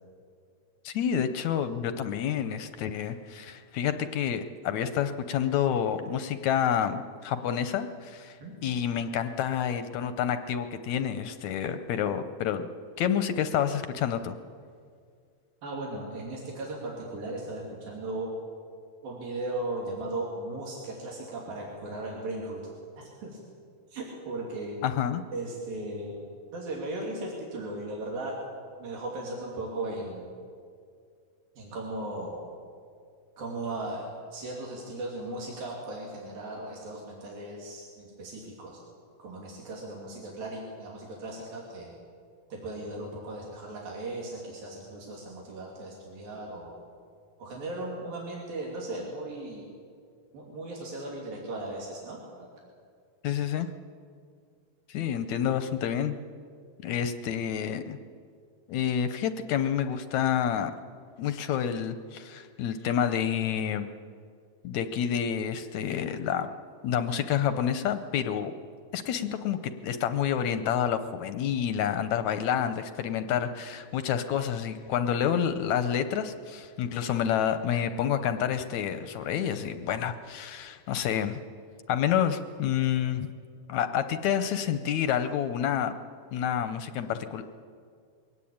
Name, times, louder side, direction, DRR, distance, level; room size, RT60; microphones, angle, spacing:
voice 1, 0.9-12.7 13.0-14.4 24.8-25.2 53.2-53.7 54.9-56.2 56.8-58.0 58.7-60.7 61.2-63.9 64.6-66.5 66.8-68.5 68.9-81.4 81.9-83.3 83.7-85.9 86.3-87.4, left 9 dB, 70° left, 10 dB, 1.8 m, -28 dB
voice 2, 15.6-18.3 19.0-22.6 23.0-23.4 23.9-24.8 25.3-28.4 28.8-30.3 31.6-32.4 33.4-38.8 39.2-41.9 42.5-46.7 47.4-49.7 50.3-52.5, right 2 dB, 90° right, -3 dB, 4.7 m, -37 dB
22.5 x 18.5 x 8.7 m, 2.2 s
omnidirectional pair, 4.0 m